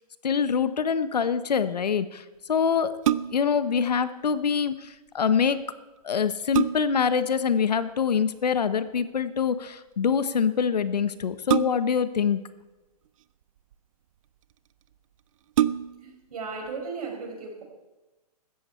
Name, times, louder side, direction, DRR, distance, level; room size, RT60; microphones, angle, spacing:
voice 1, 0.2-3.0 3.3-5.6 6.0-12.4, left 6 dB, 85° left, 13 dB, 1.1 m, -25 dB
sound 1, 2.8-3.6 5.6-5.7 6.2-7.1 8.7-9.0 11.5-12.1 13.1-13.8 14.5-14.6 14.9-15.0 15.5-16.2 16.7-16.8, right 11 dB, 55° right, 0.6 m, -27 dB
voice 2, 16.0-17.6, right 4 dB, 70° right, 2 dB, 5.3 m, -36 dB
16.0 x 13.5 x 4.4 m, 1.1 s
hypercardioid pair, 135°, 20 cm